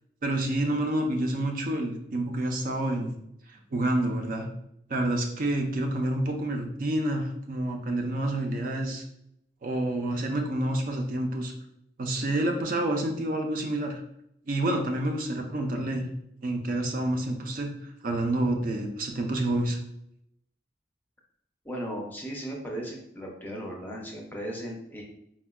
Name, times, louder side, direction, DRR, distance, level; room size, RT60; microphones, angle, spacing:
voice 1, 0.2-3.1 3.5-4.5 4.9-9.0 9.6-11.5 12.0-14.0 14.5-16.1 16.4-17.7 18.0-19.8, right 1 dB, 50° right, 3 dB, 0.4 m, -28 dB
voice 2, 21.6-25.0, equal, 10° left, -1 dB, 0.5 m, -36 dB
4.3 x 2.1 x 2.2 m, 0.76 s
head